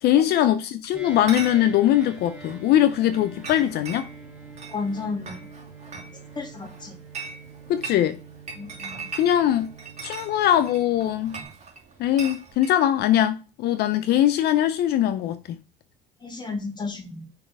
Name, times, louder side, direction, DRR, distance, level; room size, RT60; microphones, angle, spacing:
voice 1, 0.0-4.1 7.7-8.2 9.2-9.7 10.0-11.4 12.0-15.6, left 11 dB, 70° left, 0.5 m, -21 dB
sound 1, 0.9-11.4, right 3 dB, 5° right, 1.9 m, -45 dB
Chatter / Chink clink, 1.1-12.8, right 4 dB, 40° right, 2.4 m, -41 dB
voice 2, 4.7-5.4 6.4-6.9 8.6-9.1 16.2-17.3, left 4 dB, 25° left, 2.0 m, -32 dB
6.0 x 4.3 x 4.8 m
cardioid pair, 110°, 17 cm